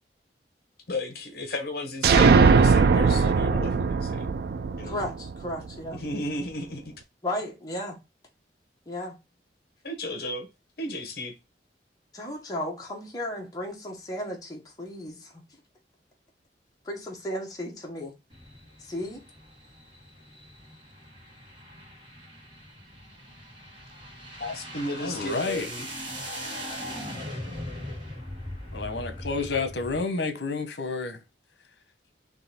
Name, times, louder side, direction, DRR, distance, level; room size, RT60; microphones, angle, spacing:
voice 1, 0.9-4.3 4.8-4.9 5.9-6.9 9.8-10.5 10.8-11.3 24.4-25.9, left 1 dB, 60° left, 1.1 m, -34 dB
sound 1, 2.0-5.7, right 4 dB, 60° right, 0.3 m, -20 dB
voice 2, 4.8-6.0 7.2-8.0 8.9-9.2 12.1-15.4 16.8-18.1 18.8-19.2, left 1 dB, 20° left, 1.3 m, -34 dB
sound 2, 18.3-30.0, equal, 30° right, 1.8 m, -40 dB
voice 3, 25.0-25.7 28.7-31.2, left 4 dB, 80° left, 0.9 m, -30 dB
4.0 x 3.1 x 4.1 m
head